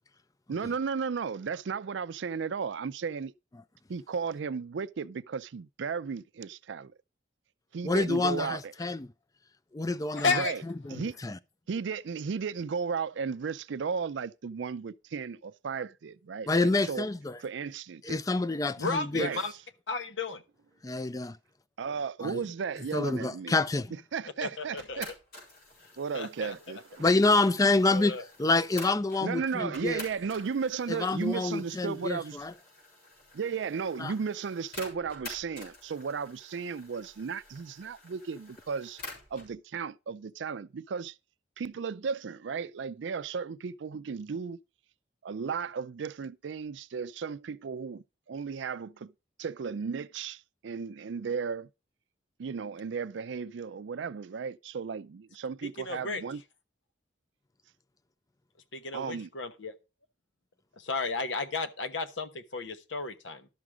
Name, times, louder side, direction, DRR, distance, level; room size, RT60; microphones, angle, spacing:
voice 1, 0.5-3.3 3.9-6.9 7.7-8.7 10.3-10.6 10.9-11.2 11.7-17.1 17.4-18.2 19.1-19.4 21.8-23.5 24.1-25.1 26.0-27.1 29.2-32.4 33.3-39.0 39.3-41.2 41.6-44.6 45.2-49.1 49.4-51.7 52.4-56.4 58.9-59.3, right 5 dB, 75° right, 0.4 m, -35 dB
voice 2, 7.8-9.1 9.7-10.4 10.8-11.4 16.5-17.4 18.0-19.3 20.8-21.4 22.2-22.4 22.9-23.9 27.0-30.0 30.9-32.5 34.0-34.1, left 3 dB, 20° left, 0.4 m, -27 dB
voice 3, 10.1-10.5 18.8-19.5 19.9-20.4 24.4-25.0 26.1-26.5 27.9-28.2 55.6-56.2 58.7-59.7 60.8-63.5, left 4 dB, 85° left, 1.1 m, -33 dB
sound 1, 24.8-29.2 29.7-39.5, left 2 dB, 55° left, 4.6 m, -49 dB
12.0 x 6.1 x 4.9 m
head